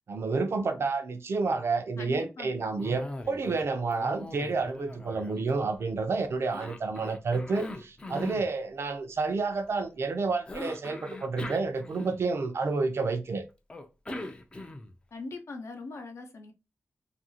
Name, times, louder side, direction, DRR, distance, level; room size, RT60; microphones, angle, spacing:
voice 1, 0.1-13.4, right 4 dB, 60° right, 0.5 m, -30 dB
voice 2, 2.0-2.7 15.1-16.5, left 3 dB, 70° left, 0.6 m, -41 dB
Cough, 2.8-3.7 3.9-6.0 6.5-8.5 10.5-12.5 13.7-15.0, left 2 dB, 20° left, 0.4 m, -41 dB
2.7 x 2.5 x 2.7 m
wide cardioid pair, 120°, 5 cm